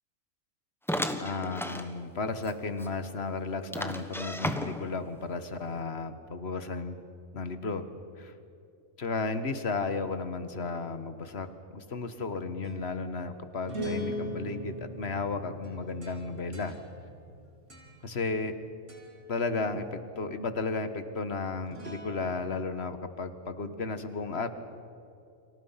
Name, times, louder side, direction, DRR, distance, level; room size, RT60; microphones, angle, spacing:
sound 1, 0.9-1.9 2.4-2.5 2.8-2.9 3.7-5.0, equal, ahead, 1.2 m, -33 dB
voice 1, 1.2-7.0 7.3-7.8 8.2-8.3 9.0-11.5 11.7-16.7 18.0-18.6 19.3-24.5, left 3 dB, 55° left, 10 dB, 1.7 m, -34 dB
sound 2, 12.2-18.6 18.9-19.3 21.6-22.6, equal, 65° right, 3.8 m, -41 dB
30.0 x 25.5 x 5.8 m, 2.6 s
omnidirectional pair, 1.3 m